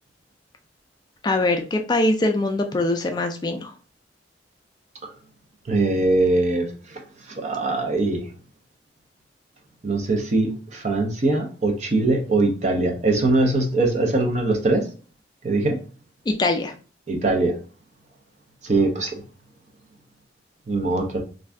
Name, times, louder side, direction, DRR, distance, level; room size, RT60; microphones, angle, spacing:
voice 1, 1.2-3.7 16.3-16.7, left 2 dB, 25° left, 5 dB, 0.3 m, -22 dB
voice 2, 5.7-6.7 7.3-8.2 9.8-14.9 15.4-15.8 17.1-17.6 18.6-19.2 20.7-21.2, right 2 dB, 40° right, 2 dB, 0.7 m, -21 dB
2.5 x 2.3 x 3.3 m, 0.36 s
head